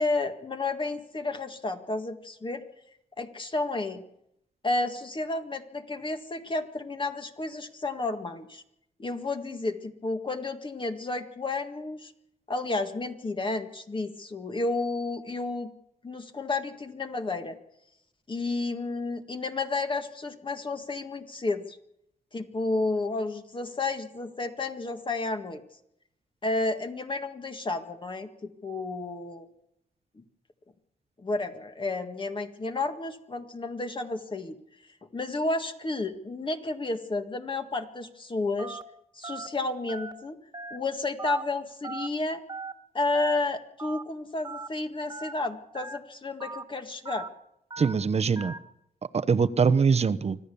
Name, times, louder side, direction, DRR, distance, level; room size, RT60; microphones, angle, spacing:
voice 1, 0.0-2.6 3.2-4.0 4.6-8.6 9.0-12.1 12.5-15.7 16.0-17.6 18.3-21.8 22.3-25.6 26.4-29.5 30.2-30.3 31.2-34.6 35.1-38.8 39.1-40.4 40.7-42.4 42.9-47.3, left 2 dB, 30° left, 6 dB, 1.9 m, -31 dB
Telephone, 38.6-38.8 39.2-39.5 39.9-40.1 40.5-40.8 41.2-41.4 41.8-42.1 42.5-42.7 43.1-43.4 43.8-44.0 44.4-44.7 45.1-45.3 45.7-46.0 46.4-46.6 47.1-47.3 47.7-47.9 48.4-48.6, right 4 dB, 25° right, 1.7 m, -38 dB
voice 2, 47.8-48.5 49.1-50.4, right 5 dB, 40° right, 14 dB, 0.9 m, -23 dB
25.5 x 15.0 x 7.0 m, 0.79 s
cardioid pair, 105°, 16 cm